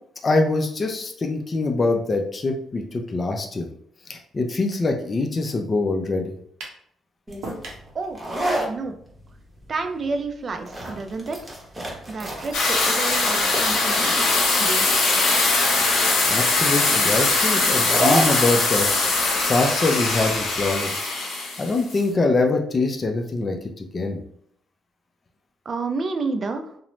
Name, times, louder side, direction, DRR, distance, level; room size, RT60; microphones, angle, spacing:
voice 1, 0.2-3.7 4.1-6.3 16.2-21.1 21.6-24.2, left 3 dB, 35° left, 3 dB, 0.4 m, -24 dB
sound 1, 6.6-6.8 7.4-7.9, right 2 dB, 80° right, 0.6 m, -35 dB
sound 2, 7.3-20.7, right 1 dB, 20° right, 0.8 m, -31 dB
voice 2, 8.5-8.9 9.7-11.4 12.1-14.9 25.7-26.6, right 3 dB, 45° right, 6 dB, 0.4 m, -30 dB
sound 3, 12.5-22.0, left 3 dB, 80° left, 0.8 m, -21 dB
2.5 x 2.0 x 3.0 m, 0.66 s
cardioid pair, 90°, 0 cm